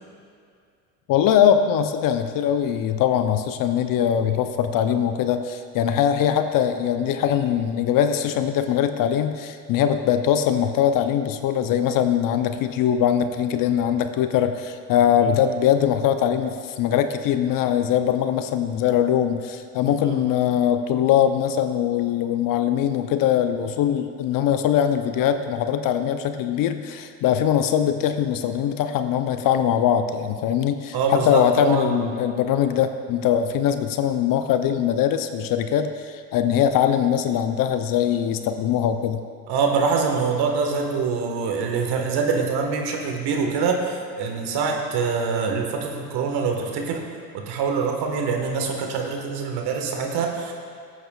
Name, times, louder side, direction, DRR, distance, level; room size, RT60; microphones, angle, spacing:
voice 1, 1.1-39.2, left 9 dB, 45° left, 9 dB, 0.7 m, -22 dB
voice 2, 30.9-32.0 39.5-47.0 47.3-50.5, right 5 dB, 55° right, 2 dB, 1.7 m, -24 dB
17.0 x 8.2 x 2.4 m, 2.3 s
hypercardioid pair, 80°, 47 cm